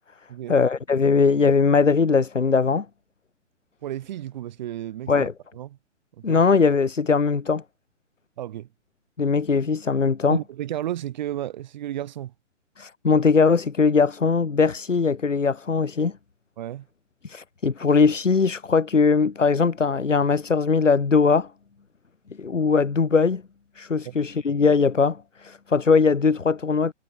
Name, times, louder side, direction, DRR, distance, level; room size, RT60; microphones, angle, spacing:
voice 1, 0.5-2.9 5.1-5.3 6.2-7.6 9.2-10.4 12.8-16.1 17.2-21.5 22.4-23.4 23.8-26.9, left 5 dB, 90° left, 0.7 m, -20 dB
voice 2, 3.8-5.3 5.5-5.7 6.2-6.4 8.4-8.7 10.3-12.3 16.6-16.9 24.1-24.2, right 12 dB, 40° right, 1.9 m, -33 dB
figure-of-eight pair, 125°, 36 cm